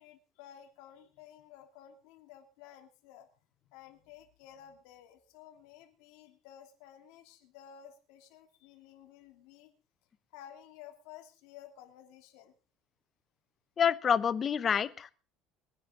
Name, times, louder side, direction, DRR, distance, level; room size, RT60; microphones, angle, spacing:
voice 1, 0.0-3.3 3.7-9.7 10.3-12.5, left 10 dB, 85° left, 3 dB, 3.2 m, -54 dB
voice 2, 13.8-15.1, left 7 dB, 30° left, 15 dB, 0.8 m, -27 dB
23.0 x 10.0 x 3.8 m, 0.37 s
cardioid pair, 145°, 0 cm